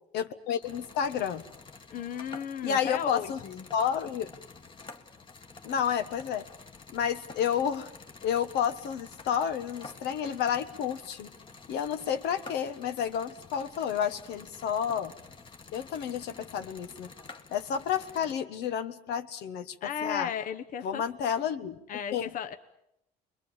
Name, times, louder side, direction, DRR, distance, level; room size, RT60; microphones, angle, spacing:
voice 1, 0.1-1.4 2.6-3.4 3.7-4.3 5.6-6.5 6.9-7.9 8.2-11.3 11.7-15.1 15.7-17.1 17.5-19.7 20.0-20.3 20.8-21.8 22.1-22.3, left 8 dB, 80° left, 9 dB, 1.4 m, -30 dB
sound 1, 0.6-18.3, left 4 dB, 30° left, 1.6 m, -49 dB
voice 2, 1.9-3.6 19.8-21.0 21.9-22.6, left 8 dB, 55° left, 8 dB, 1.1 m, -35 dB
28.5 x 22.5 x 7.3 m, 0.82 s
cardioid pair, 110°, 17 cm